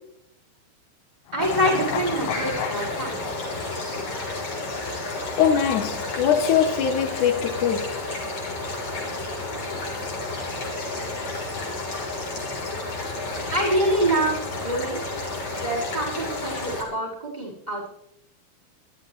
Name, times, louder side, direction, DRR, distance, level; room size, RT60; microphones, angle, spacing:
sound 1, 1.3-4.7 5.0-5.1, left 12 dB, 85° left, 2.7 m, -34 dB
voice 1, 1.3-3.2 13.5-15.0 15.6-17.9, right 1 dB, 10° right, 5.0 m, -25 dB
sound 2, 1.4-16.8, left 2 dB, 40° left, 4.3 m, -31 dB
voice 2, 5.4-8.0, left 8 dB, 70° left, 1.9 m, -22 dB
23.0 x 13.0 x 3.1 m
omnidirectional pair, 4.6 m